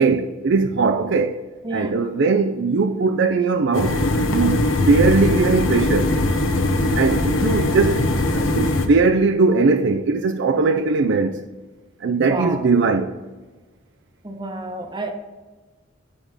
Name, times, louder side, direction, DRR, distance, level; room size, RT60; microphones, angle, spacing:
voice 1, 0.0-1.4 1.7-4.6 4.9-6.1 7.0-11.4 12.0-13.2, right 4 dB, 65° right, 0.4 m, -19 dB
voice 2, 1.6-2.0 12.2-12.7 14.2-15.1, right 2 dB, 25° right, 0.9 m, -30 dB
sound 1, 3.7-8.9, left 1 dB, 80° left, 0.9 m, -20 dB
8.5 x 4.8 x 5.0 m
head